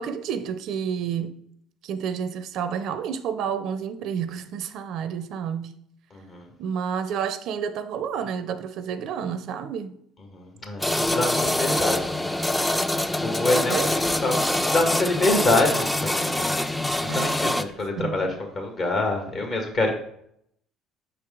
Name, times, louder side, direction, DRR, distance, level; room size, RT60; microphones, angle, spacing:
voice 1, 0.0-1.4 1.8-5.8 6.6-9.9 13.7-13.9 17.1-17.5 18.0-18.3, right 7 dB, 65° right, 0.5 m, -30 dB
voice 2, 6.1-6.5 10.3-12.3 13.2-18.3 18.5-19.9, left 2 dB, 50° left, 1.7 m, -26 dB
sound 1, 10.8-17.6, left 1 dB, 10° left, 0.4 m, -25 dB
5.7 x 4.6 x 3.7 m
supercardioid pair, 80°, 0 cm